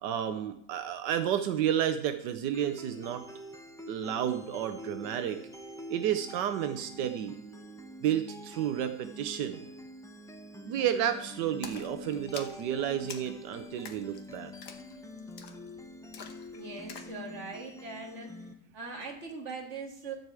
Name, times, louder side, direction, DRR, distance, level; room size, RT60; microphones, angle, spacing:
voice 1, 0.0-3.3 3.9-5.4 5.9-7.4 8.0-9.6 10.7-14.5, right 10 dB, 85° right, 9 dB, 1.3 m, -31 dB
sound 1, 2.5-18.5, left 1 dB, 5° left, 0.5 m, -46 dB
Splash splatter, 11.6-17.2, left 6 dB, 70° left, 1.6 m, -48 dB
voice 2, 16.5-18.3 18.7-20.1, right 4 dB, 45° right, 2 dB, 2.2 m, -41 dB
13.0 x 4.8 x 8.2 m, 0.72 s
omnidirectional pair, 1.8 m